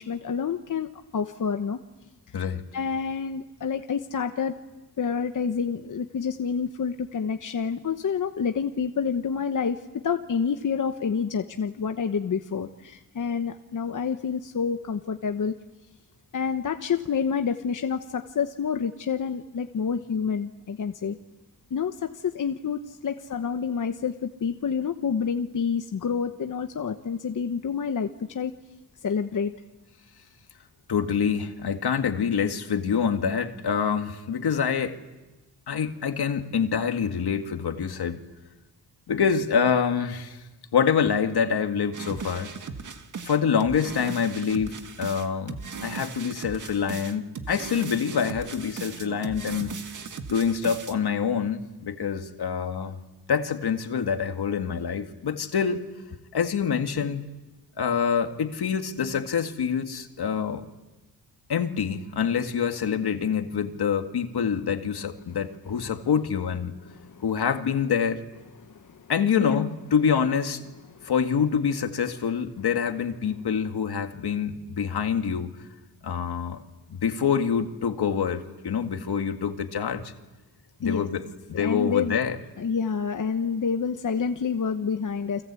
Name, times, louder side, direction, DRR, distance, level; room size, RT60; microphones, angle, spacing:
voice 1, 0.0-1.8 2.4-2.5 2.7-4.6 5.0-15.5 16.3-21.2 21.7-28.5 29.0-29.5 66.9-67.2 68.6-69.1 69.4-69.7 70.9-71.1 80.8-81.1 81.5-82.2 82.6-85.4, left 6 dB, 50° left, 6 dB, 1.1 m, -28 dB
voice 2, 30.9-35.0 35.7-38.2 39.1-40.4 40.7-42.5 43.3-45.6 45.8-49.7 50.3-53.0 53.3-55.9 56.3-57.3 57.8-60.6 61.5-66.8 67.2-68.2 69.1-70.6 71.0-75.5 76.0-76.6 76.9-80.1 80.8-82.4, left 7 dB, 75° left, 6 dB, 2.1 m, -26 dB
sound 1, 41.9-50.9, right 5 dB, 50° right, 1.8 m, -38 dB
30.0 x 23.0 x 8.4 m, 1.1 s
wide cardioid pair, 145°, 39 cm